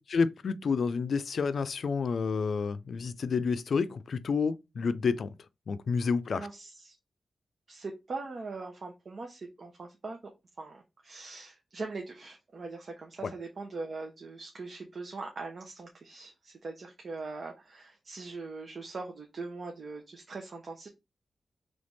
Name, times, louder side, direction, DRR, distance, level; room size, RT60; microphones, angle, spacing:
voice 1, 0.1-5.3 5.7-6.5 13.2-13.3, left 5 dB, 70° left, 0.4 m, -29 dB
voice 2, 6.3-6.9 7.7-10.2 10.6-20.9, right 3 dB, 60° right, 0.9 m, -41 dB
3.5 x 3.3 x 3.9 m
cardioid pair, 65°, 0 cm